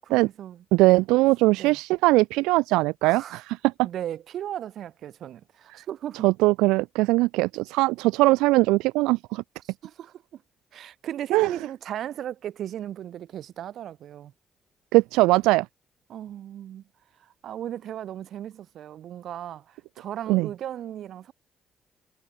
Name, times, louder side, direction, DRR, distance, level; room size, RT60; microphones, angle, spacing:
voice 1, 0.0-0.6 1.6-1.8 3.0-3.4 3.8-6.3 9.6-10.4 10.7-14.3 16.1-16.8 17.4-21.3, right 11 dB, 75° right, 8.0 m, -36 dB
voice 2, 0.7-3.9 6.2-9.4 11.3-11.5 14.9-15.7 20.3-20.5, right 21 dB, 90° right, 0.4 m, -21 dB
supercardioid pair, 55°, 0 cm